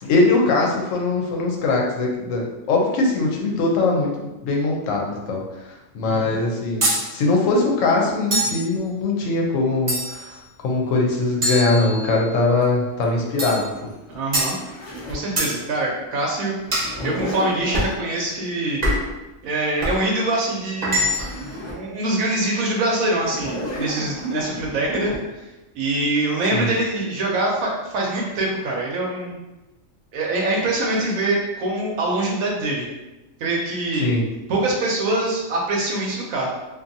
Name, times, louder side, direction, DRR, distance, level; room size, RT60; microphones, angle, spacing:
voice 1, 0.0-5.4 5.7-10.4 10.6-13.9 26.5-26.7 34.0-34.2, left 3 dB, 75° left, 0 dB, 1.0 m, -21 dB
voice 2, 6.0-6.3 14.1-14.5 15.1-18.8 19.4-21.1 21.6-25.4 25.7-29.3 30.1-32.9 33.4-34.1 34.5-36.5, right 2 dB, 85° right, -2 dB, 1.1 m, -24 dB
sound 1, 6.8-7.1 8.3-8.7 9.9-10.3 11.4-12.3 13.4-13.7 14.3-14.6 15.4-15.6 16.7-17.0 17.7-18.0 18.8-19.2 19.8-20.0 20.8-21.4, right 1 dB, 35° right, 0.8 m, -23 dB
Zipper (clothing), 12.6-15.3 16.7-17.9 20.5-20.6 20.8-21.8 22.3-22.4 23.2-25.2, equal, 35° left, 0.4 m, -32 dB
2.6 x 2.5 x 2.6 m, 1.0 s
omnidirectional pair, 1.4 m